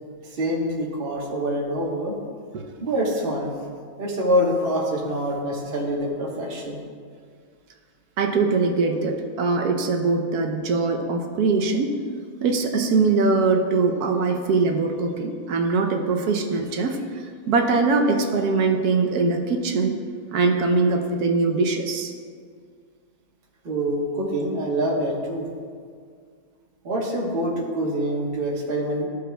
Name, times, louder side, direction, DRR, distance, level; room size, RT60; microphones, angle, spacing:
voice 1, 0.2-2.2 2.8-3.5 4.0-6.8 23.6-25.5 26.8-29.1, equal, 40° right, -3 dB, 1.2 m, -25 dB
voice 2, 8.2-12.0 12.4-19.9 20.3-22.1, right 4 dB, 75° right, 4 dB, 1.1 m, -22 dB
14.0 x 5.0 x 2.2 m, 2.1 s
omnidirectional pair, 1.7 m